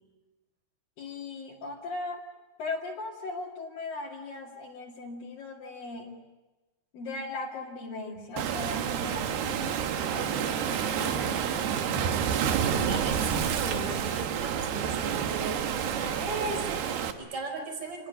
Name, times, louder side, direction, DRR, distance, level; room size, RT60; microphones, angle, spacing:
voice 1, 1.0-2.2 2.6-6.1 6.9-9.9 10.1-12.2, left 3 dB, 60° left, -4 dB, 4.0 m, -38 dB
Waves surf, 8.4-17.1, right 8 dB, 80° right, 3.5 m, -29 dB
voice 2, 12.5-18.1, right 3 dB, 45° right, 4 dB, 6.0 m, -37 dB
28.0 x 20.5 x 9.3 m, 1.1 s
omnidirectional pair, 4.6 m